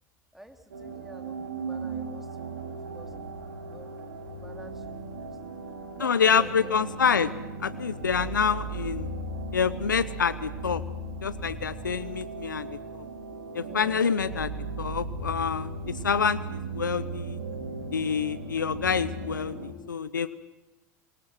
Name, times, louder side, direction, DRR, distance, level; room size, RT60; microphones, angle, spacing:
voice 1, 0.3-3.1 3.6-3.9 4.3-5.3 5.9-6.7 13.7-14.0, right 1 dB, 5° right, 4 dB, 3.3 m, -49 dB
sound 1, 0.7-19.7, right 3 dB, 75° right, 5.5 m, -37 dB
voice 2, 6.0-7.3 7.6-9.1 9.5-10.8 11.2-12.7 12.9-13.0 13.5-15.7 16.0-17.4 17.9-20.3, left 6 dB, 85° left, 16 dB, 0.9 m, -27 dB
27.0 x 24.0 x 6.1 m, 1.0 s
hypercardioid pair, 85°, 10 cm